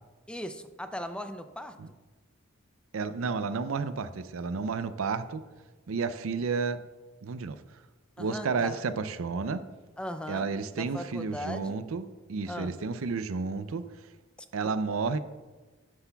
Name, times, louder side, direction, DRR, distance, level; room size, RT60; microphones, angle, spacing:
voice 1, 0.3-1.8 8.2-8.8 10.0-10.5 10.8-11.8 12.5-12.7, equal, 5° left, 9 dB, 0.4 m, -38 dB
voice 2, 2.9-5.4 5.9-6.8 7.2-7.6 8.2-9.7 10.3-13.9 14.5-15.2, right 4 dB, 80° right, 12 dB, 0.5 m, -31 dB
11.5 x 9.8 x 2.3 m, 1.2 s
head